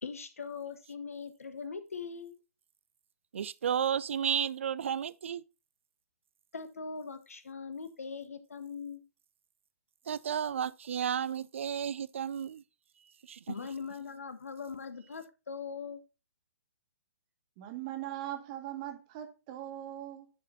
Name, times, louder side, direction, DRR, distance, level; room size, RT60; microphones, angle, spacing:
voice 1, 0.0-2.4 6.5-9.0 13.5-16.0, left 5 dB, 65° left, 1.4 m, -41 dB
voice 2, 3.3-5.4 10.1-12.6 13.3-13.4, right 8 dB, 50° right, 0.5 m, -32 dB
voice 3, 17.6-20.3, right 12 dB, 30° right, 1.8 m, -40 dB
9.9 x 5.0 x 4.0 m
figure-of-eight pair, 125°, 8 cm